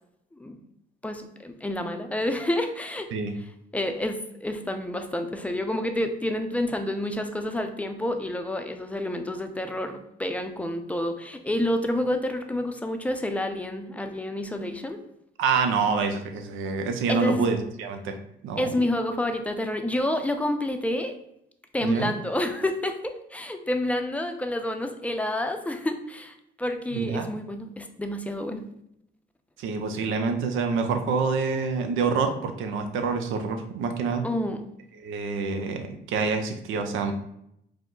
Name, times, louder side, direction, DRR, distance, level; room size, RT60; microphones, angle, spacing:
voice 1, 1.0-3.1 3.7-15.0 17.1-17.4 18.6-21.2 21.7-28.7 34.2-34.7, left 1 dB, 5° left, 6 dB, 0.5 m, -29 dB
voice 2, 15.4-18.2 18.4-18.7 21.8-22.1 26.9-27.3 29.6-34.2 35.0-37.1, right 5 dB, 85° right, 6 dB, 0.6 m, -27 dB
4.8 x 2.1 x 3.8 m, 0.76 s
cardioid pair, 90°, 20 cm